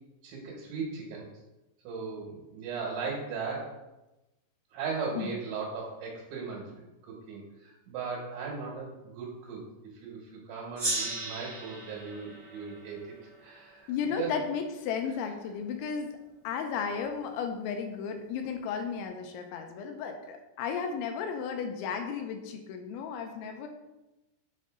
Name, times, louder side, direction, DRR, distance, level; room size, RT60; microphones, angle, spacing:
voice 1, 0.2-1.3 1.9-3.8 4.7-6.7 7.0-9.6 10.0-13.1 13.4-13.9 14.2-14.3, right 5 dB, 75° right, -3 dB, 3.7 m, -37 dB
Gong, 10.8-13.9, right 2 dB, 45° right, 1.3 m, -36 dB
voice 2, 13.9-16.2 16.4-23.7, left 6 dB, 85° left, 5 dB, 2.9 m, -34 dB
7.6 x 5.4 x 3.8 m, 0.99 s
omnidirectional pair, 5.5 m